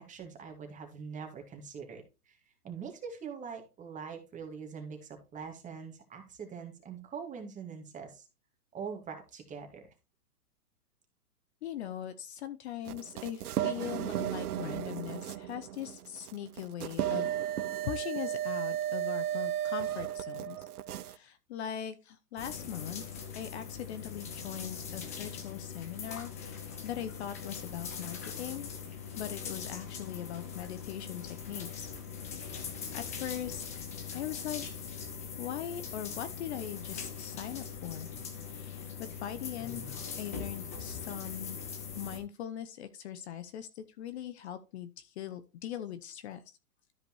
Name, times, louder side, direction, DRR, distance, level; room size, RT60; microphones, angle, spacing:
voice 1, 0.0-2.4 2.6-8.2 8.7-9.8, right 6 dB, 15° right, 4 dB, 2.1 m, -43 dB
voice 2, 11.6-20.6 21.0-28.7 29.2-31.9 32.2-33.6 33.9-34.6 35.4-38.1 38.4-39.9 40.2-41.6 42.0-46.4, left 10 dB, 45° left, 11 dB, 0.9 m, -41 dB
sound 1, 12.9-21.2, right 11 dB, 75° right, 0.7 m, -34 dB
sound 2, 22.4-42.2, left 6 dB, 10° left, 0.3 m, -41 dB
13.0 x 5.1 x 3.1 m, 0.28 s
hypercardioid pair, 130°, 46 cm